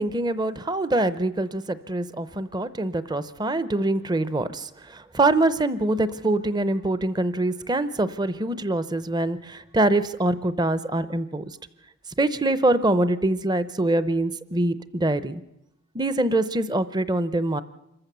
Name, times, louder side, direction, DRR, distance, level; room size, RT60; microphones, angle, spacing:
voice 1, 0.0-4.7 5.1-11.4 12.2-15.4 15.9-17.6, right 2 dB, 20° right, 14 dB, 0.6 m, -24 dB
26.0 x 14.5 x 6.9 m, 0.84 s
head